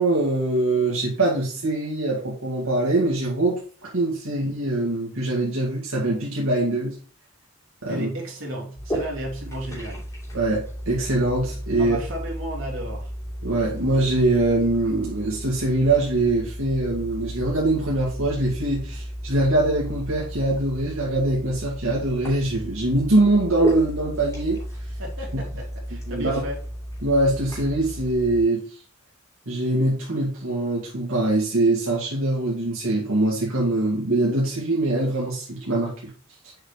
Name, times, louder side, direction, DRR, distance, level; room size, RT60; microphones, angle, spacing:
voice 1, 0.0-7.0 7.8-8.1 10.3-12.0 13.4-24.6 26.1-26.3 27.0-28.7 29.5-35.9, right 2 dB, 85° right, -4 dB, 2.0 m, -23 dB
voice 2, 7.9-10.0 11.8-13.1 25.0-26.6, right 1 dB, 65° right, -2 dB, 3.0 m, -33 dB
sound 1, 8.7-28.4, equal, 15° left, 3.0 m, -34 dB
7.3 x 5.2 x 3.2 m, 0.39 s
head